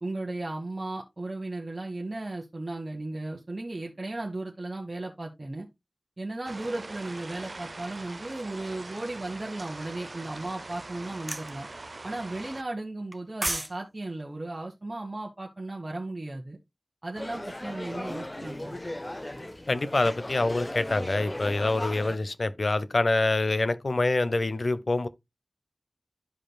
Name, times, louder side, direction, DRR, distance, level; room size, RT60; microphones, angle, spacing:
voice 1, 0.0-5.7 6.2-11.7 12.0-16.6 17.0-18.8, right 2 dB, 40° right, 1.2 m, -35 dB
sound 1, 6.4-12.6, right 2 dB, 55° right, 0.4 m, -42 dB
sound 2, 11.3-11.5 13.1-13.7 14.0-14.2, right 1 dB, 25° right, 0.7 m, -30 dB
sound 3, 17.1-22.2, left 1 dB, 25° left, 0.5 m, -37 dB
voice 2, 19.7-25.1, left 2 dB, 65° left, 0.6 m, -26 dB
12.5 x 5.1 x 2.2 m
wide cardioid pair, 65°, 0 cm